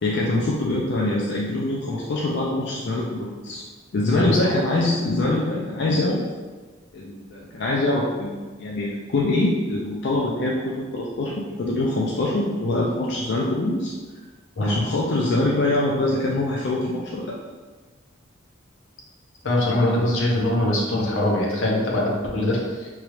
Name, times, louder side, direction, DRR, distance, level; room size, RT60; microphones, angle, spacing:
voice 1, 0.0-3.6 3.9-6.3 6.9-13.9 14.6-17.4, left 2 dB, 55° left, -4 dB, 0.4 m, -24 dB
voice 2, 4.1-4.5 14.6-14.7 19.4-22.9, left 1 dB, 80° left, -2 dB, 0.7 m, -22 dB
3.1 x 2.4 x 3.0 m, 1.4 s
head